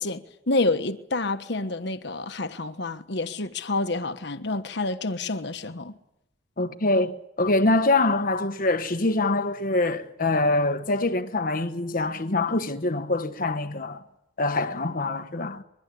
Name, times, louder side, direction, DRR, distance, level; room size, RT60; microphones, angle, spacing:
voice 1, 0.0-5.9, left 2 dB, 65° left, 1.4 m, -28 dB
voice 2, 6.6-14.0 14.4-15.6, left 2 dB, 50° left, 1.2 m, -24 dB
23.0 x 21.5 x 8.5 m
head